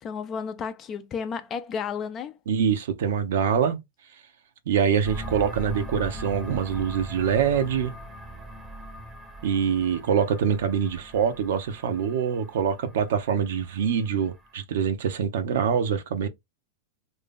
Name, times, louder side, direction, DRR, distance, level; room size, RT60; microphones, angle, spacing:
voice 1, 0.0-2.4, left 6 dB, 30° left, 0.5 m, -32 dB
voice 2, 2.5-3.8 4.7-7.9 9.4-16.3, right 7 dB, 60° right, 0.7 m, -24 dB
sound 1, 5.0-14.6, right 1 dB, 15° right, 0.9 m, -40 dB
3.3 x 2.7 x 3.7 m
figure-of-eight pair, 90°, 0 cm